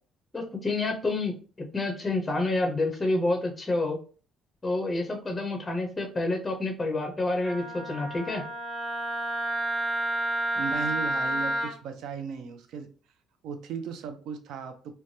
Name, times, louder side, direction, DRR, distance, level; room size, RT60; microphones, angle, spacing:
voice 1, 0.3-4.0 4.6-8.4, left 2 dB, 15° left, 2 dB, 0.5 m, -28 dB
Wind instrument woodwind instrument, 7.4-11.7, right 1 dB, 20° right, 0.8 m, -30 dB
voice 2, 10.6-12.9 13.4-14.9, right 6 dB, 70° right, 7 dB, 0.5 m, -36 dB
3.1 x 2.2 x 2.6 m, 0.38 s
cardioid pair, 165°, 0 cm